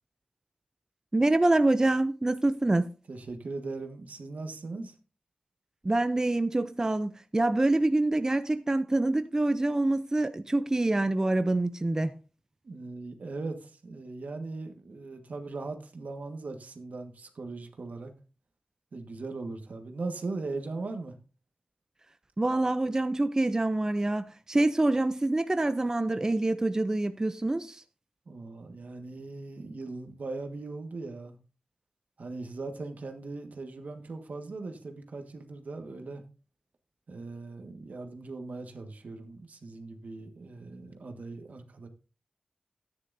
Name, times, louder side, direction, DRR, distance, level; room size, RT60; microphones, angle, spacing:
voice 1, 1.1-2.9 5.8-12.1 22.4-27.8, right 2 dB, 25° right, 0.5 m, -26 dB
voice 2, 3.1-4.9 12.6-18.1 18.9-21.1 28.3-31.4 32.2-36.2 37.1-41.9, right 3 dB, 80° right, 1.6 m, -39 dB
13.5 x 9.7 x 2.7 m
wide cardioid pair, 100°, 3 cm